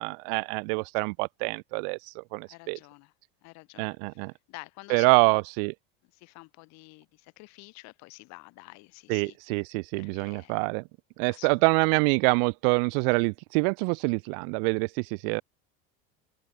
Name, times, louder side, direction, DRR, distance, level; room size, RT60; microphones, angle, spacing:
voice 1, 0.0-2.8 3.8-4.3 4.9-5.7 9.1-10.8 11.2-15.4, right 39 dB, 65° right, 0.9 m, -26 dB
voice 2, 2.5-3.1 3.4-5.4 6.1-9.6 10.0-10.6 11.3-11.5, left 25 dB, 60° left, 4.8 m, -49 dB
open air
supercardioid pair, 120°, 31 cm